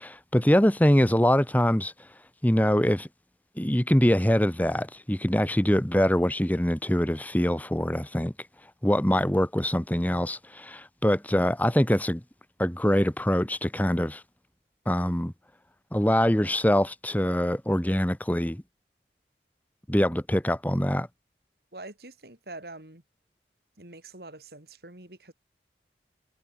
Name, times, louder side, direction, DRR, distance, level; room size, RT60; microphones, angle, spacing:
voice 1, 0.0-1.9 2.4-3.1 3.6-8.3 8.8-12.2 12.6-14.2 14.9-15.3 15.9-18.6 19.9-21.1, equal, 10° left, 1.2 m, -24 dB
voice 2, 21.7-23.0 23.8-25.3, right 2 dB, 65° right, 3.7 m, -44 dB
head